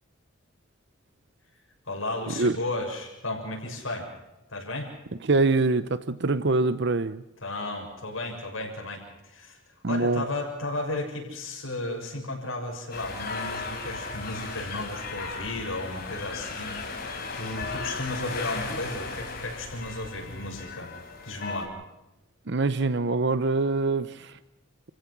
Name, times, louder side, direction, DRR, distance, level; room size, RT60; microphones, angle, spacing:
voice 1, 1.9-4.1 4.5-4.9 7.4-9.6 9.9-20.9 21.2-21.7, left 2 dB, 85° left, 6.9 m, -34 dB
voice 2, 5.2-7.2 9.8-10.2 22.5-24.4, right 3 dB, 60° right, 0.8 m, -24 dB
sound 1, 12.9-21.7, left 3 dB, 50° left, 4.4 m, -36 dB
29.5 x 15.5 x 6.2 m
head